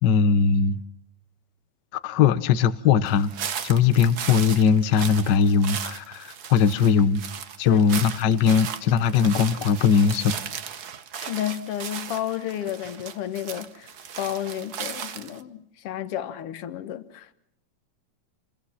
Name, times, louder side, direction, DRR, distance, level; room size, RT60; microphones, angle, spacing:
voice 1, 0.0-0.8 2.0-3.3 3.6-7.2 7.6-10.3, left 6 dB, 80° left, 0.9 m, -20 dB
sound 1, 3.1-15.4, right 8 dB, 75° right, 0.9 m, -36 dB
voice 2, 11.2-17.3, left 11 dB, 60° left, 1.9 m, -32 dB
28.5 x 22.5 x 5.7 m
omnidirectional pair, 3.4 m